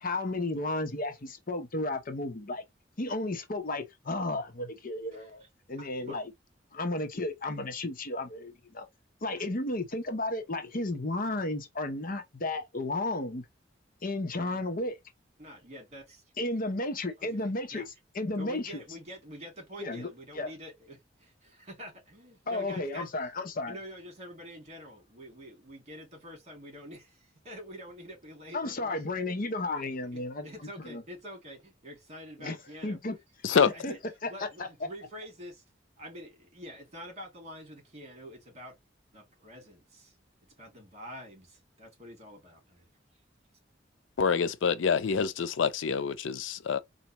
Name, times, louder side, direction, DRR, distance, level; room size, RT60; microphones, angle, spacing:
voice 1, 0.0-2.6 3.0-5.4 5.7-6.2 6.7-8.9 9.2-13.4 14.0-15.0 16.4-18.8 19.8-20.1 20.3-20.5 22.5-23.7 28.5-30.5 30.8-31.0 32.4-32.6 32.8-33.2 33.6-34.0 34.2-34.3 34.6-34.7, left 2 dB, 50° left, 0.8 m, -33 dB
voice 2, 5.8-6.2 15.4-16.2 17.2-17.9 18.4-23.1 23.7-29.5 29.7-33.0 33.5-34.0 34.3-35.6 36.0-38.8 39.1-40.1 40.6-42.9, equal, 40° right, 2.6 m, -46 dB
voice 3, 44.2-46.8, left 6 dB, 85° left, 0.5 m, -26 dB
4.4 x 2.8 x 2.9 m
head